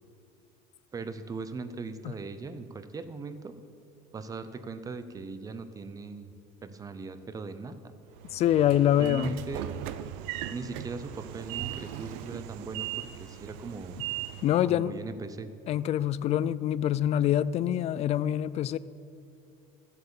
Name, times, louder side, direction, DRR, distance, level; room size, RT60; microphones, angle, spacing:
voice 1, 0.9-3.6 4.1-6.3 6.6-7.9 9.0-9.6 10.5-14.0 14.7-15.5, right 4 dB, 20° right, 11 dB, 0.7 m, -39 dB
Train / Sliding door, 8.2-14.7, right 12 dB, 75° right, 0.6 m, -38 dB
voice 2, 8.3-9.3 14.4-15.0 15.7-18.8, left 11 dB, 35° left, 18 dB, 0.4 m, -25 dB
13.5 x 7.9 x 7.1 m, 2.5 s
cardioid pair, 130°, 18 cm